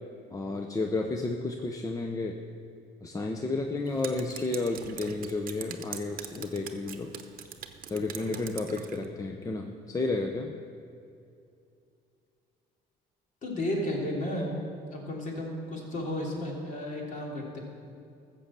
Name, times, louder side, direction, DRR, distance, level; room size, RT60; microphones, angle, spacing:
voice 1, 0.3-2.4 3.0-7.1 7.9-10.5, left 3 dB, 20° left, 3 dB, 0.7 m, -32 dB
Drip, 3.8-9.0, right 9 dB, 55° right, 0.9 m, -43 dB
voice 2, 13.4-14.5 14.9-17.6, left 1 dB, 50° left, -2 dB, 3.2 m, -33 dB
14.0 x 6.8 x 7.4 m, 2.5 s
cardioid pair, 110°, 17 cm